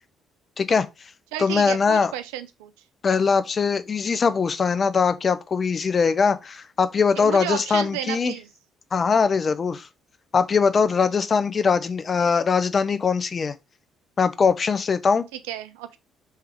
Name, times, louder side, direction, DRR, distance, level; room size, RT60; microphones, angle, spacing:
voice 1, 0.6-0.9 1.4-2.1 3.0-8.3 8.9-9.9 10.3-13.5 14.2-15.3, left 5 dB, 40° left, 0.5 m, -21 dB
voice 2, 1.3-2.7 7.2-8.5 15.3-16.0, right 12 dB, 80° right, 0.4 m, -32 dB
3.5 x 3.4 x 4.5 m
hypercardioid pair, 50°, 0 cm